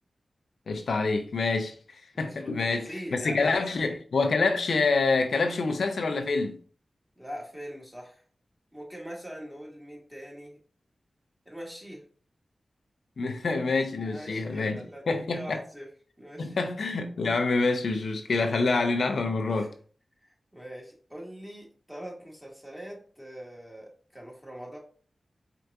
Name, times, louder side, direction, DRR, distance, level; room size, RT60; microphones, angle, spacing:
voice 1, 0.7-1.7 2.2-2.8 3.1-6.6 13.2-15.6 16.4-19.7, left 3 dB, 85° left, 0.5 m, -26 dB
voice 2, 2.1-3.9 7.2-8.2 8.7-10.6 11.5-12.0 14.0-15.9 16.2-16.7 19.5-19.7 20.2-24.8, equal, 5° right, 1.7 m, -42 dB
4.5 x 3.8 x 2.4 m
cardioid pair, 50°, 0 cm